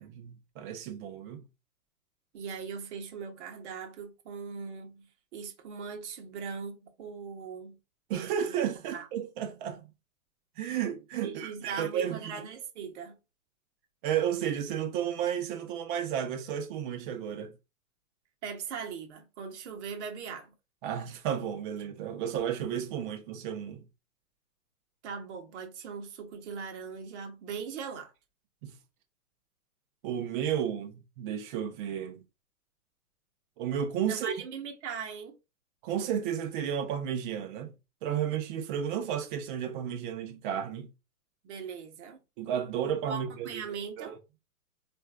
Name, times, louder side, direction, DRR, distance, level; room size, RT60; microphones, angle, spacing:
voice 1, 0.0-1.4 8.1-9.8 10.6-12.3 14.0-17.5 20.8-23.8 28.6-28.7 30.0-32.2 33.6-34.3 35.8-37.7 38.0-40.9 42.4-43.6 44.0-44.2, right 9 dB, 35° right, 0.8 m, -32 dB
voice 2, 2.3-7.8 8.9-9.1 11.2-13.2 18.4-20.5 25.0-28.1 34.0-35.4 41.4-42.2 43.1-44.1, right 6 dB, 50° right, 1.2 m, -40 dB
4.3 x 2.5 x 2.3 m
hypercardioid pair, 115°, 44 cm